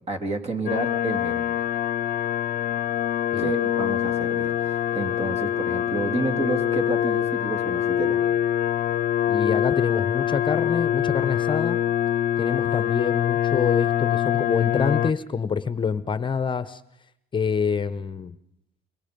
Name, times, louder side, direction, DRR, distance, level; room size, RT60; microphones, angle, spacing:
voice 1, 0.1-1.5 3.4-8.2, right 2 dB, 40° right, 6 dB, 3.2 m, -30 dB
sound 1, 0.7-15.1, left 11 dB, 55° left, 0.8 m, -24 dB
voice 2, 9.3-11.8 12.4-16.8 17.3-18.4, left 6 dB, 30° left, 14 dB, 0.9 m, -26 dB
26.0 x 23.0 x 5.3 m, 0.77 s
cardioid pair, 110°, 17 cm